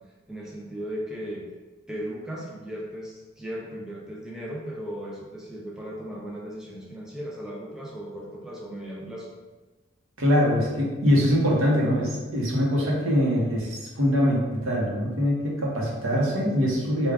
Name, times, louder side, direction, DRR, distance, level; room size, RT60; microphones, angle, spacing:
voice 1, 0.3-1.4 1.9-9.3, equal, 5° right, -4 dB, 0.4 m, -36 dB
voice 2, 10.2-17.1, equal, 90° right, -3 dB, 0.9 m, -23 dB
3.5 x 2.3 x 3.5 m, 1.2 s
head